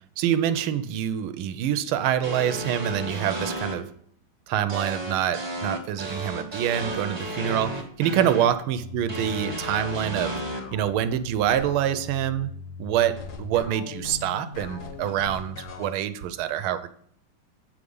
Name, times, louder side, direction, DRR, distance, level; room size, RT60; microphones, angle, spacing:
voice 1, 0.2-3.9 4.5-10.4 10.7-12.5 12.8-16.9, right 10 dB, 85° right, 12 dB, 1.5 m, -26 dB
sound 1, 2.2-3.7 4.7-8.5 9.1-10.6, right 1 dB, 20° right, 0.7 m, -32 dB
sound 2, 8.7-16.0, left 4 dB, 60° left, 1.2 m, -40 dB
8.2 x 4.9 x 5.3 m, 0.67 s
omnidirectional pair, 2.3 m